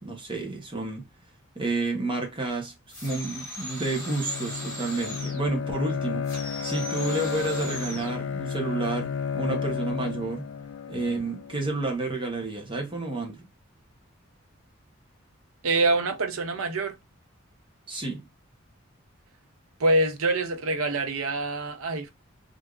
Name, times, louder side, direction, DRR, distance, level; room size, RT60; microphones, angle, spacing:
voice 1, 0.0-1.0 1.6-2.7 3.0-10.5 10.9-13.5 17.9-18.3, right 3 dB, 25° right, 0.8 m, -30 dB
sound 1, 2.9-5.5 6.2-8.2, left 1 dB, 15° left, 1.6 m, -38 dB
Bowed string instrument, 3.8-11.6, left 6 dB, 80° left, 0.4 m, -32 dB
voice 2, 15.6-16.9 19.8-22.1, right 2 dB, 90° right, 0.6 m, -25 dB
3.3 x 2.5 x 2.3 m
head